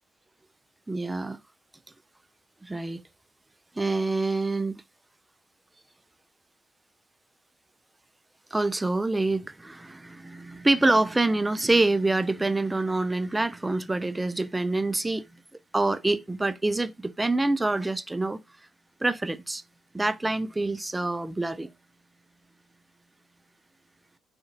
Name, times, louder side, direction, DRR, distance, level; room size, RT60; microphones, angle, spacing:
voice 1, 0.9-1.4 2.6-3.0 3.8-4.8 8.5-15.3 15.7-18.4 19.0-19.6 19.9-21.7, right 2 dB, 15° right, 0.3 m, -26 dB
2.5 x 2.4 x 2.7 m
hypercardioid pair, 50°, 0 cm